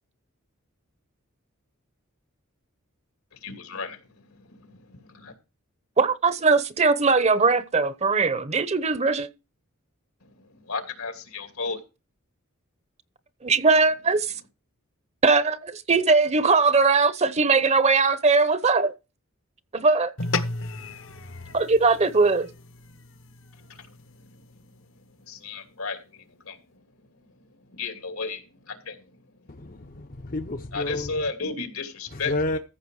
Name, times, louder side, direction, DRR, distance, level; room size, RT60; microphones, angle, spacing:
voice 1, 3.3-5.3 10.2-11.8 23.7-24.4 24.8-24.9 25.1-26.8 27.7-29.2 29.6-29.7 30.7-32.6, left 4 dB, 80° left, 2.7 m, -35 dB
voice 2, 6.0-9.3 13.4-14.3 15.2-18.9 19.7-20.1 21.5-22.5, right 4 dB, 30° right, 0.9 m, -20 dB
sound 1, 20.2-24.8, left 3 dB, 60° left, 1.2 m, -35 dB
voice 3, 29.5-31.1 32.1-32.6, left 2 dB, 40° left, 0.8 m, -30 dB
14.5 x 6.5 x 4.8 m
head